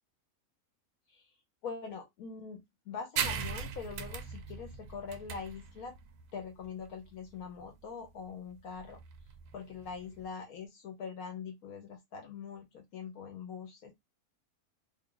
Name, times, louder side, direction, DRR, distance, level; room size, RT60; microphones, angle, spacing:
voice 1, 1.6-5.9 6.3-9.0 9.5-13.9, left 6 dB, 75° left, 1.1 m, -43 dB
sound 1, 3.2-10.3, right 7 dB, 85° right, 1.1 m, -40 dB
2.9 x 2.3 x 3.7 m
omnidirectional pair, 1.6 m